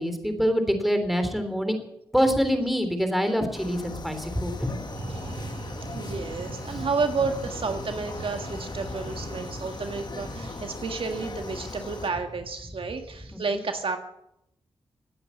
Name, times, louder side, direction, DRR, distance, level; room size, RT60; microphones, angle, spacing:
voice 1, 0.0-1.8 2.1-4.8 6.7-6.8 13.5-13.6, equal, ahead, 7 dB, 3.4 m, -25 dB
sound 1, 3.5-12.1, left 3 dB, 45° left, 1.5 m, -39 dB
sound 2, 4.8-12.1, right 2 dB, 75° right, 5.2 m, -40 dB
voice 2, 6.0-14.0, right 4 dB, 60° right, 5 dB, 1.8 m, -31 dB
17.5 x 9.6 x 8.4 m, 0.80 s
cardioid pair, 60°, 10 cm